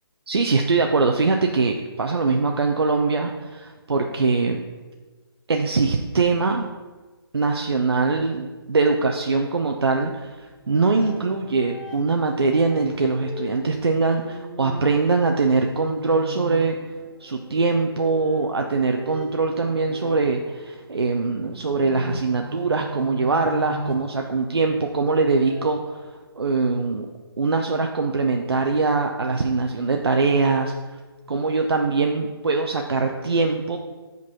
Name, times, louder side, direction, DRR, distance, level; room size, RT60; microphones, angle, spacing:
voice 1, 0.3-4.6 5.5-6.7 7.3-16.8 17.2-25.9 26.4-27.1 27.4-30.7 31.3-33.8, right 3 dB, 75° right, 3 dB, 0.5 m, -22 dB
sound 1, 10.6-25.7, equal, 5° right, 0.5 m, -38 dB
5.2 x 3.9 x 5.7 m, 1.3 s
figure-of-eight pair, 150°, 13 cm